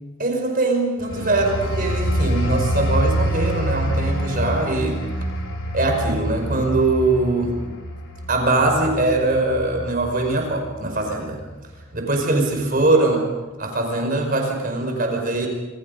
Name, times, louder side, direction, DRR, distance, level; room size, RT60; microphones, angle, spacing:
voice 1, 0.2-5.0 5.7-7.5 8.3-11.4 11.9-13.2 13.6-15.5, right 2 dB, 40° right, 3 dB, 5.3 m, -21 dB
sound 1, 1.0-11.4 11.8-12.0, equal, 60° left, 3.7 m, -26 dB
27.5 x 26.0 x 5.4 m, 1.2 s
head